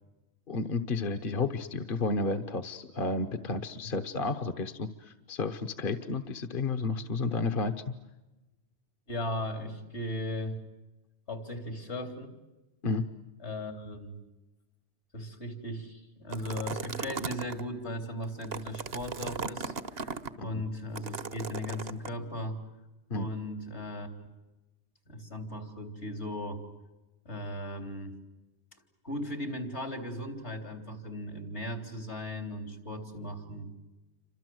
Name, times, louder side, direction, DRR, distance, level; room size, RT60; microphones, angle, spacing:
voice 1, 0.5-7.9 12.8-13.1 20.4-20.6 23.1-23.3, left 3 dB, 55° left, 8 dB, 1.3 m, -32 dB
voice 2, 9.1-10.6 11.3-12.3 13.4-14.2 15.1-22.6 23.1-24.1 25.1-26.6 27.3-28.2 29.0-33.7, left 1 dB, 80° left, 6 dB, 4.1 m, -37 dB
sound 1, 16.3-17.6 18.2-20.3 21.0-22.1, right 5 dB, 65° right, 1.3 m, -37 dB
29.0 x 26.0 x 7.9 m, 1.1 s
omnidirectional pair, 1.1 m